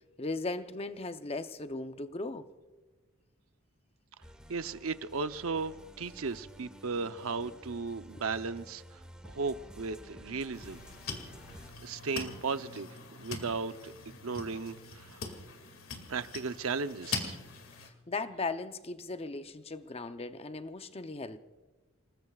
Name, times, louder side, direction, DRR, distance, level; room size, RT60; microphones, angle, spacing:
voice 1, 0.2-2.5 17.8-21.4, left 3 dB, 30° left, 0.7 m, -37 dB
sound 1, 4.2-11.7, equal, 5° right, 1.5 m, -52 dB
voice 2, 4.5-10.8 11.8-12.9 13.2-15.2 16.1-17.4, right 4 dB, 85° right, 0.7 m, -36 dB
sound 2, 10.5-17.9, left 4 dB, 70° left, 2.3 m, -42 dB
28.0 x 20.0 x 2.4 m
head